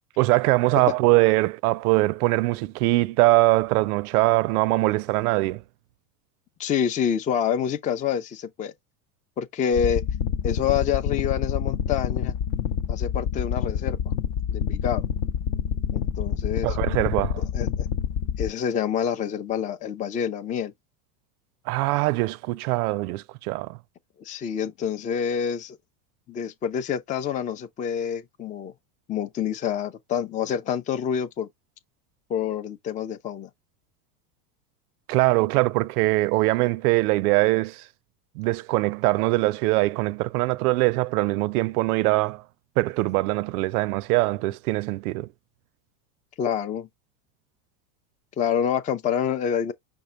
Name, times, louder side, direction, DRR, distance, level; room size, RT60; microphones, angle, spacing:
voice 1, 0.2-5.6 16.6-17.4 21.7-23.8 35.1-37.8 38.4-42.4 42.8-45.3, right 20 dB, 80° right, 0.5 m, -22 dB
voice 2, 6.6-8.7 9.4-10.0 10.4-12.3 12.9-14.0 14.5-15.0 15.9-16.8 17.5-17.9 18.4-20.7 24.2-25.8 26.3-28.7 29.1-31.5 32.3-33.5 46.4-46.9 48.4-49.7, left 8 dB, 20° left, 0.4 m, -27 dB
sound 1, 9.8-18.5, left 8 dB, 50° left, 0.7 m, -27 dB
5.3 x 2.2 x 4.4 m
supercardioid pair, 115°, 44 cm